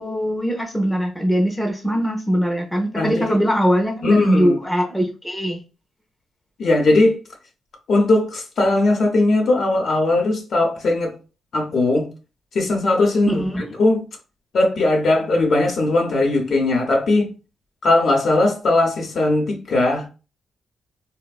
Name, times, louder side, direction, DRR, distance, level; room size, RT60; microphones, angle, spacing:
voice 1, 0.0-5.6 13.3-13.7, equal, 5° left, 0.5 m, -21 dB
voice 2, 3.0-3.4 4.0-4.6 6.6-7.2 7.9-11.1 11.5-12.1 12.5-13.4 13.8-14.0 14.5-17.3 17.8-20.1, left 2 dB, 55° left, 0.7 m, -18 dB
3.2 x 2.0 x 2.3 m
cardioid pair, 125°, 0 cm